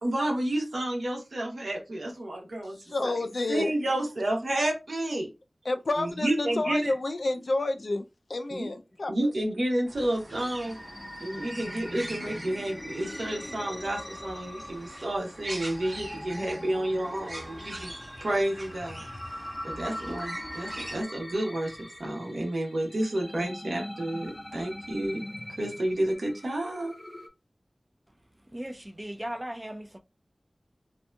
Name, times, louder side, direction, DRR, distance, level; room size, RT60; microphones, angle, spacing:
voice 1, 0.0-2.8 3.0-3.1 3.5-5.3 5.9-6.9 8.5-8.7 9.1-10.8 11.2-17.9 18.2-19.0 19.6-25.2 25.6-26.9, right 1 dB, 85° right, 0.9 m, -30 dB
voice 2, 2.9-3.7 5.7-9.3, left 2 dB, 75° left, 0.3 m, -30 dB
sound 1, 9.9-21.0, right 1 dB, 45° right, 0.8 m, -43 dB
sound 2, 10.0-27.3, left 1 dB, 35° left, 0.6 m, -42 dB
voice 3, 28.5-30.0, right 1 dB, 20° right, 0.4 m, -37 dB
2.8 x 2.5 x 2.2 m
wide cardioid pair, 55°, 0 cm